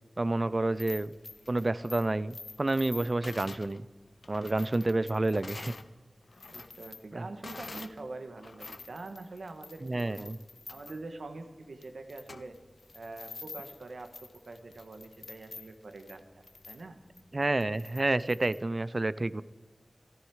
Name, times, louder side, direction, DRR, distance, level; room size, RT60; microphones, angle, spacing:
voice 1, 0.2-1.1 1.5-3.9 4.3-5.7 7.1-7.2 9.8-10.4 17.3-19.4, right 2 dB, 40° right, 18 dB, 0.4 m, -29 dB
sound 1, 0.6-5.9 6.2-8.0 8.4-18.6, left 3 dB, 65° left, 0.7 m, -48 dB
voice 2, 6.5-10.3 10.7-12.6 12.9-17.0, right 2 dB, 90° right, 7 dB, 1.3 m, -45 dB
14.5 x 13.5 x 4.8 m, 1.3 s
wide cardioid pair, 75°, 0 cm